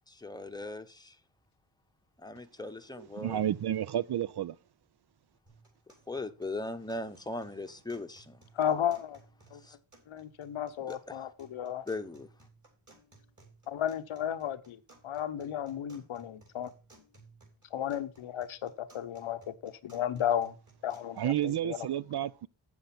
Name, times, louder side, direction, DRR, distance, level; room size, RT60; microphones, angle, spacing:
voice 1, 0.1-1.2 2.2-3.4 6.1-8.4 9.6-9.8 10.9-11.2 11.9-12.3, left 2 dB, 10° left, 0.9 m, -39 dB
voice 2, 3.2-4.5 21.2-22.5, right 11 dB, 55° right, 0.5 m, -31 dB
sound 1, 5.5-21.5, right 3 dB, 35° right, 3.4 m, -60 dB
voice 3, 8.5-9.2 9.5-9.6 10.1-11.9 13.7-16.7 17.7-20.5 20.8-21.9, left 10 dB, 80° left, 0.9 m, -34 dB
7.8 x 7.2 x 5.6 m
wide cardioid pair, 95°, 47 cm